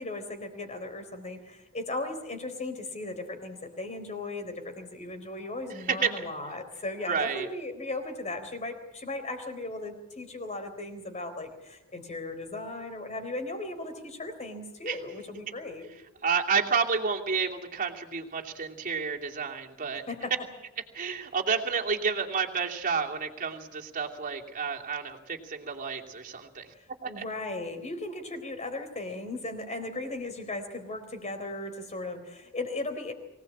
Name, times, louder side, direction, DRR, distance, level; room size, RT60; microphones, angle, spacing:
voice 1, 0.0-15.9 20.1-20.3 26.8-33.1, left 2 dB, 30° left, 7 dB, 4.0 m, -37 dB
voice 2, 5.7-6.3 7.0-7.5 14.9-15.0 16.2-20.0 20.9-26.7 27.0-27.2, right 5 dB, 40° right, 0 dB, 2.8 m, -30 dB
24.0 x 18.5 x 8.6 m, 0.95 s
head